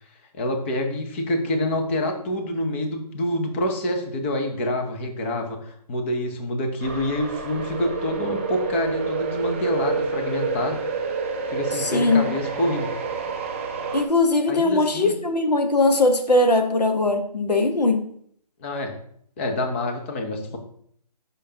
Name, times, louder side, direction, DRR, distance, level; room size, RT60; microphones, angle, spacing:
voice 1, 0.3-10.8 11.5-12.9 14.5-15.1 18.6-18.9 19.4-20.6, left 1 dB, 20° left, 4 dB, 0.6 m, -27 dB
sound 1, 6.8-14.0, right 4 dB, 20° right, 0.5 m, -28 dB
voice 2, 11.8-12.3 13.9-18.0, left 2 dB, 85° left, 6 dB, 1.1 m, -20 dB
6.5 x 5.1 x 2.8 m, 0.63 s
figure-of-eight pair, 150°, 20 cm